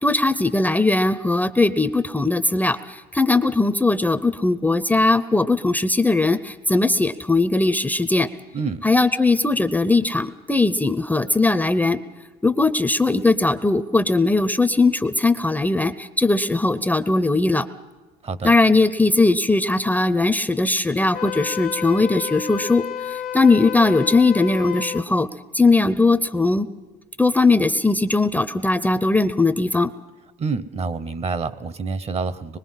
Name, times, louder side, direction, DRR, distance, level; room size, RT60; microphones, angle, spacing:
voice 1, 0.0-8.3 8.8-12.0 12.4-17.7 18.4-25.3 25.5-26.7 27.2-29.9, left 3 dB, 10° left, 11 dB, 0.6 m, -19 dB
voice 2, 8.5-8.8 18.2-18.5 30.4-32.6, right 4 dB, 40° right, 16 dB, 0.8 m, -27 dB
Wind instrument woodwind instrument, 21.1-25.1, left 9 dB, 55° left, 0.7 m, -31 dB
24.5 x 21.5 x 5.6 m, 1.2 s
cardioid pair, 110°, 17 cm